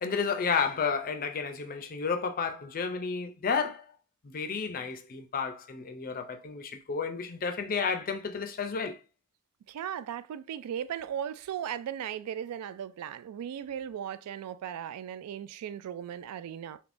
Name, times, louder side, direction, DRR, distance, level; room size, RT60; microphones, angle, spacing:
voice 1, 0.0-3.9 4.2-9.0, left 5 dB, 40° left, 0.4 m, -31 dB
voice 2, 9.7-16.8, right 9 dB, 85° right, 0.3 m, -37 dB
3.4 x 2.9 x 2.5 m
head